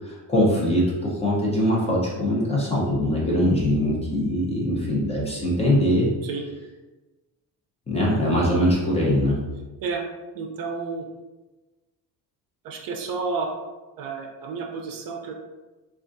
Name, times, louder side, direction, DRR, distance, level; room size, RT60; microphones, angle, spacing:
voice 1, 0.0-6.1 7.9-9.4, equal, 15° left, -5 dB, 0.7 m, -22 dB
voice 2, 10.3-11.1 12.6-13.5 14.0-15.3, right 4 dB, 60° right, 2 dB, 0.5 m, -30 dB
3.7 x 2.4 x 2.6 m, 1.2 s
cardioid pair, 155°, 40 cm